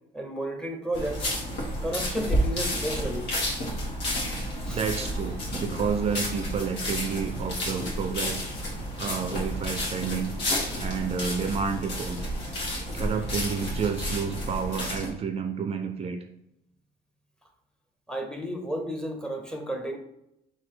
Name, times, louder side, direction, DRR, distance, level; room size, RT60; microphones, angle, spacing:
voice 1, 0.1-1.4 1.8-3.3 4.6-4.8 18.1-20.0, right 1 dB, 5° left, 4 dB, 0.7 m, -32 dB
sound 1, 0.9-15.1, equal, 85° left, 1.5 m, -31 dB
voice 2, 4.7-8.6 8.9-10.4 10.7-12.3 12.9-16.2, right 6 dB, 40° right, 7 dB, 0.4 m, -30 dB
3.8 x 2.7 x 4.5 m, 0.84 s
cardioid pair, 110°, 17 cm